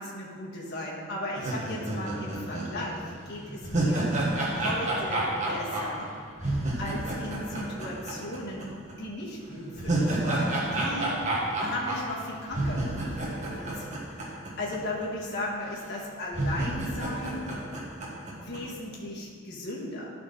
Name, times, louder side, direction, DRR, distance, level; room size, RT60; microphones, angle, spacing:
voice 1, 0.0-4.1 4.6-6.1 6.4-6.5 6.8-11.2 11.6-14.0 14.2-17.5 18.3-20.1, left 1 dB, 45° left, -5 dB, 1.6 m, -36 dB
sound 1, 1.4-8.6 8.9-9.0 9.5-14.8 15.0-15.1 15.8-15.9 16.3-18.6, right 1 dB, 30° right, 1.4 m, -30 dB
11.5 x 4.3 x 5.5 m, 2.1 s
head